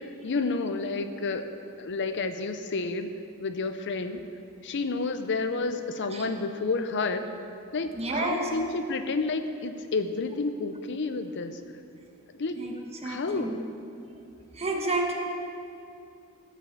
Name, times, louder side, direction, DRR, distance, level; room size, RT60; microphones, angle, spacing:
voice 1, 0.0-1.5 1.8-3.1 3.4-4.2 4.6-7.3 7.7-11.6 12.3-12.6 13.0-13.6, left 3 dB, 55° left, 8 dB, 0.6 m, -30 dB
voice 2, 7.9-8.5 12.6-12.7 13.0-13.5 14.5-15.1, right 2 dB, 30° right, 1 dB, 1.2 m, -29 dB
13.5 x 5.8 x 7.3 m, 2.7 s
head